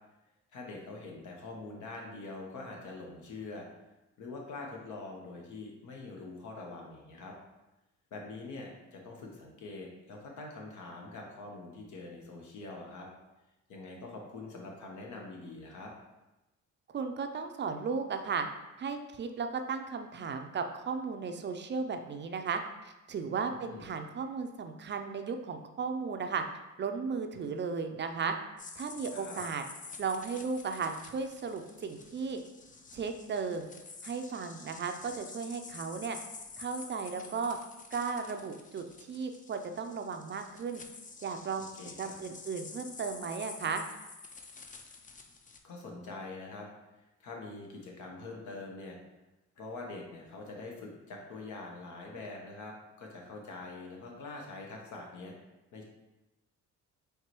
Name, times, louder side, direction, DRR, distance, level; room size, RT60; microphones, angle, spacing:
voice 1, 0.5-3.7 4.2-7.3 8.1-13.1 13.7-15.9 23.5-23.9 29.1-29.4 41.8-42.1 45.6-46.7 47.2-49.0 49.6-55.3 55.7-55.8, left 3 dB, 75° left, 0 dB, 1.0 m, -44 dB
voice 2, 16.9-18.5 18.8-26.4 26.8-28.4 28.8-29.6 30.0-32.4 32.9-33.7 34.0-36.2 36.6-37.6 37.9-40.8 41.2-41.7 42.0-43.8, right 5 dB, 40° right, 6 dB, 0.4 m, -35 dB
sound 1, 28.6-45.6, left 4 dB, 25° left, 0.5 m, -49 dB
4.6 x 3.2 x 3.0 m, 1.0 s
cardioid pair, 90°, 30 cm